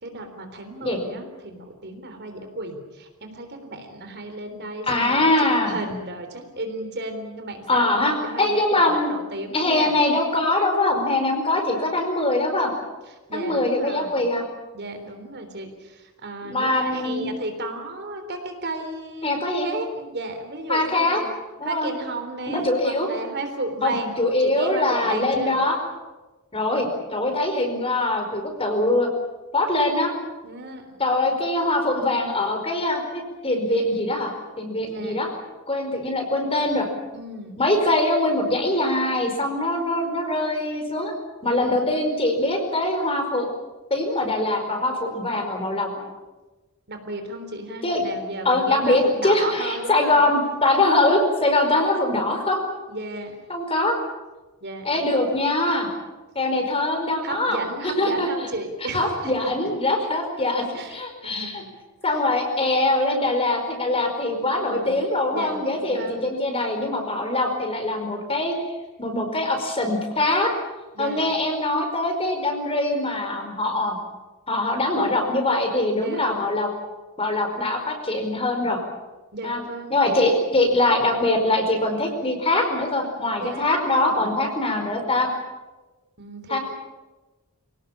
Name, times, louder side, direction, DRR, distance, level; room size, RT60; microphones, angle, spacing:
voice 1, 0.0-5.3 5.6-10.0 13.1-14.3 14.7-19.4 19.6-21.3 21.6-25.6 30.4-31.0 34.8-35.2 37.1-37.6 41.6-41.8 46.9-50.2 52.9-53.4 54.6-54.9 57.2-59.5 60.7-61.7 62.1-62.2 64.3-65.0 65.3-66.3 70.9-71.3 76.0-76.2 79.3-80.3 83.4-84.3 86.2-86.6, right 2 dB, 50° right, 6 dB, 3.7 m, -34 dB
voice 2, 4.9-5.8 7.7-9.1 9.5-12.7 13.3-14.4 16.4-17.4 19.2-19.7 20.7-21.2 21.6-21.9 22.5-23.1 23.8-25.8 26.5-29.1 29.5-30.1 31.0-35.3 35.7-36.9 37.6-41.1 41.4-43.5 43.9-45.9 47.8-48.0 48.4-52.6 53.5-54.0 54.8-55.9 56.3-57.6 58.0-58.3 58.9-61.6 62.0-68.5 69.0-70.5 71.0-74.0 74.5-76.7 77.2-78.8 79.4-79.6 79.9-85.3 86.5-86.6, left 2 dB, 25° left, 4 dB, 4.8 m, -23 dB
27.0 x 18.0 x 8.7 m, 1.2 s
head